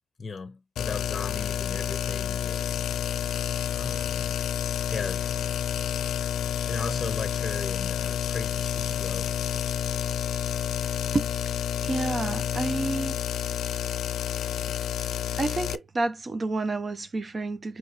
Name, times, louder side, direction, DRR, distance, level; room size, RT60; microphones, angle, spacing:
voice 1, 0.2-2.9 3.7-4.3 4.9-5.3 6.6-9.4, left 4 dB, 35° left, 0.8 m, -36 dB
sound 1, 0.8-15.8, left 10 dB, 90° left, 0.5 m, -29 dB
voice 2, 11.8-13.2 15.4-17.8, right 2 dB, 35° right, 0.8 m, -29 dB
4.4 x 3.1 x 3.0 m
cardioid pair, 90°, 0 cm